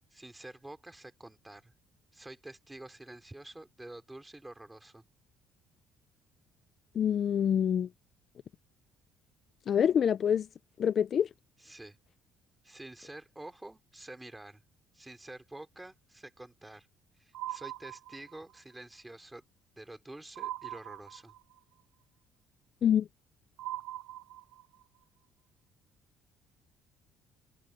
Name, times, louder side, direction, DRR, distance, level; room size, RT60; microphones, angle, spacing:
voice 1, 0.1-1.7 2.1-5.0 11.6-12.0 12.6-14.6 14.9-16.9 17.2-19.4 19.8-21.3, right 2 dB, 10° right, 3.1 m, -48 dB
voice 2, 7.0-7.9 9.7-10.5 10.8-11.3 22.8-23.1, left 8 dB, 45° left, 0.5 m, -26 dB
sound 1, 17.3-18.6 20.4-21.6 23.6-24.8, right 14 dB, 75° right, 2.0 m, -41 dB
cardioid pair, 135°, 0 cm